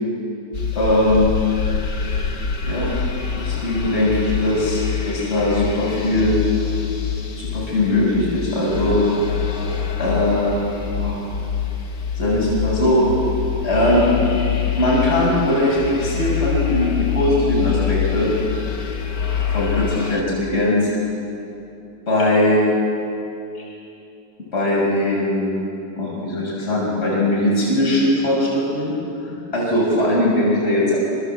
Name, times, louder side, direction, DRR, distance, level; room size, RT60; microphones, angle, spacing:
sound 1, 0.5-20.2, left 8 dB, 40° left, 1.4 m, -25 dB
voice 1, 0.7-1.3 2.6-2.9 3.4-6.3 7.4-9.0 10.0-10.6 11.0-11.2 12.2-13.1 13.6-14.1 14.7-18.3 19.5-20.9 22.1-22.6 24.5-25.5 26.0-28.9 29.3-31.0, left 1 dB, 15° left, -5 dB, 6.7 m, -20 dB
27.5 x 26.5 x 8.0 m, 2.8 s
omnidirectional pair, 3.9 m